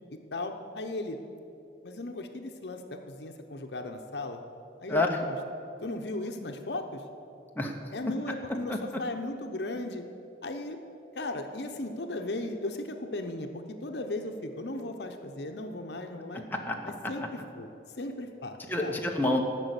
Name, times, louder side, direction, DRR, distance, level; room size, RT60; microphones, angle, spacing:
voice 1, 0.3-1.2 1.8-4.4 4.8-5.4 5.8-7.0 7.9-10.0 10.4-10.8 11.1-16.4 17.1-17.7 18.0-19.0, left 2 dB, 70° left, 5 dB, 0.9 m, -36 dB
voice 2, 4.9-5.2 7.5-7.9 8.7-8.8 16.7-16.8 17.0-17.1 18.7-19.4, left 2 dB, 10° left, 1 dB, 1.0 m, -28 dB
14.5 x 6.2 x 8.2 m, 2.7 s
head